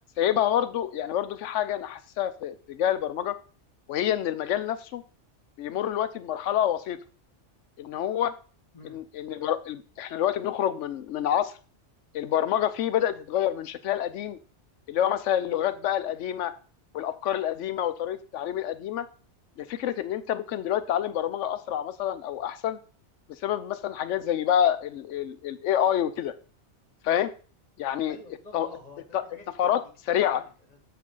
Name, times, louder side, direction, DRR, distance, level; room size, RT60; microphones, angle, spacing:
voice 1, 0.2-3.4 3.9-5.0 5.6-7.0 7.8-8.3 8.8-11.5 12.1-14.4 14.9-16.5 16.9-19.1 19.6-22.8 23.4-26.3 27.0-27.3 27.8-28.2 28.5-28.7 29.1-29.2 29.6-29.8 30.1-30.4, left 10 dB, 85° left, 13 dB, 1.0 m, -27 dB
voice 2, 28.1-29.0 29.3-29.8 30.1-30.8, left 2 dB, 35° left, 4 dB, 1.8 m, -48 dB
7.4 x 7.0 x 3.8 m, 0.38 s
omnidirectional pair, 1.2 m